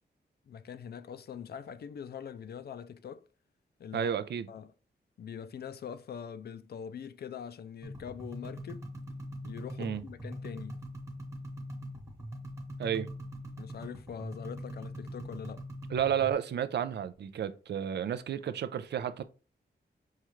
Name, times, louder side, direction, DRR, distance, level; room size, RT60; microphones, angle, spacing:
voice 1, 0.5-3.3 3.8-4.2 4.5-4.7 5.2-8.8 9.4-10.8 13.6-15.6, left 7 dB, 65° left, 0.4 m, -43 dB
voice 2, 3.9-4.5 9.8-10.0 12.8-13.1 15.9-19.2, right 9 dB, 70° right, 0.4 m, -32 dB
sound 1, 7.8-16.3, equal, 15° right, 1.1 m, -42 dB
5.5 x 2.4 x 3.1 m
wide cardioid pair, 115°, 18 cm